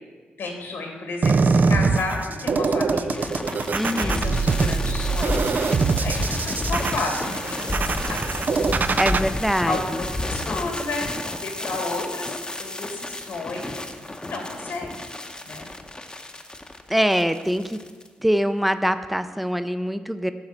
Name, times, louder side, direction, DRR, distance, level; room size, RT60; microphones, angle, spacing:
voice 1, 0.4-3.3 3.9-5.4 6.0-8.4 9.1-9.3 9.6-13.8 14.2-15.1 15.4-15.7, left 3 dB, 75° left, 2 dB, 1.8 m, -32 dB
sound 1, 1.2-9.2, right 4 dB, 50° right, 0.5 m, -23 dB
sound 2, 2.8-18.1, left 1 dB, 20° left, 0.9 m, -31 dB
voice 2, 3.7-4.2 9.0-10.0 16.9-17.8 18.2-20.3, equal, ahead, 10 dB, 0.6 m, -23 dB
10.5 x 3.9 x 7.2 m, 1.5 s
cardioid pair, 60°, 4 cm